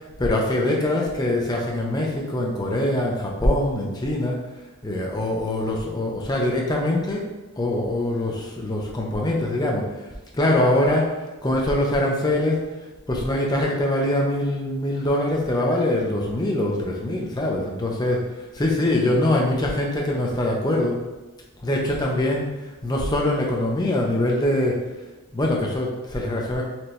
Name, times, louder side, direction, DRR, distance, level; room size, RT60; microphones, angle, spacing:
voice 1, 0.2-4.4 4.8-7.3 7.6-10.1 10.3-11.1 11.4-12.7 13.1-21.0 21.6-24.8 25.3-26.6, left 1 dB, 20° left, -1 dB, 0.5 m, -23 dB
4.4 x 2.7 x 3.2 m, 1.1 s
head